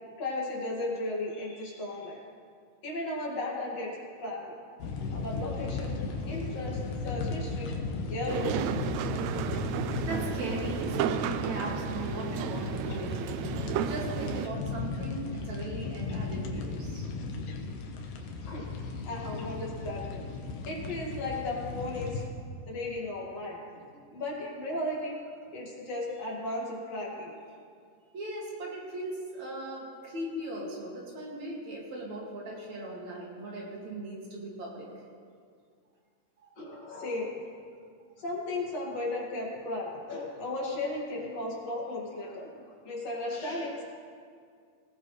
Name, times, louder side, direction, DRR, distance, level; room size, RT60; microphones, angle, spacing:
voice 1, 0.2-2.2 2.8-4.4 5.1-6.0 6.3-7.7 8.1-8.6 18.4-18.7 19.0-20.3 20.6-22.2 22.7-23.6 23.9-25.2 25.5-27.3 36.6-37.4 38.2-43.8, left 2 dB, 55° left, -4 dB, 3.3 m, -35 dB
sound 1, 4.8-22.3, left 4 dB, 90° left, 2.9 m, -36 dB
sound 2, 8.3-14.5, right 10 dB, 85° right, 1.6 m, -33 dB
voice 2, 10.1-17.1 28.1-34.9 36.4-36.5, right 1 dB, 60° right, -3 dB, 3.6 m, -38 dB
20.0 x 18.5 x 3.3 m, 2.2 s
omnidirectional pair, 3.7 m